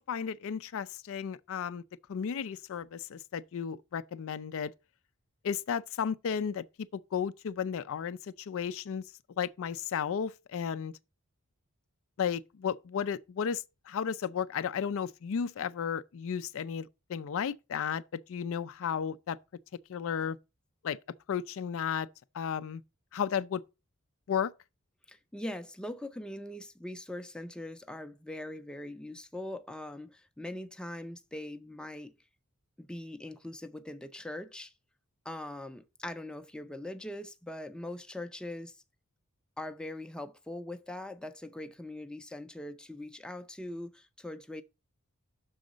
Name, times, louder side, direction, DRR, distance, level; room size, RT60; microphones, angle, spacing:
voice 1, 0.0-1.8 2.1-4.7 5.4-6.6 6.9-9.0 9.4-10.9 12.2-19.4 19.9-20.4 20.8-21.0 21.3-22.1 22.3-22.8 23.1-23.6 24.3-24.5, left 7 dB, 65° left, 0.4 m, -34 dB
voice 2, 25.1-32.1 32.8-34.7 35.2-38.8 39.6-44.6, left 1 dB, 5° left, 0.5 m, -41 dB
6.3 x 3.9 x 6.2 m
head